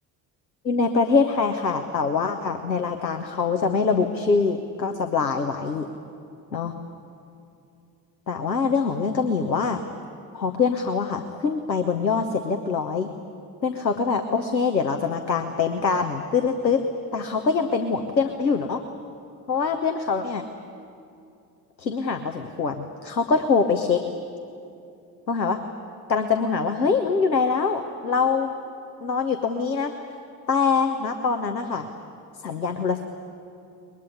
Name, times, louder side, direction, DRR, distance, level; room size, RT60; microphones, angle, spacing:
voice 1, 0.6-5.9 6.5-6.7 8.3-9.8 10.3-13.1 13.6-16.8 17.1-18.8 19.5-20.4 21.8-24.0 25.3-25.6 26.1-28.5 29.0-29.9 30.5-31.9 32.4-33.0, left 5 dB, 90° left, 6 dB, 0.8 m, -24 dB
23.5 x 21.0 x 9.8 m, 2.6 s
figure-of-eight pair, 45°, 50 cm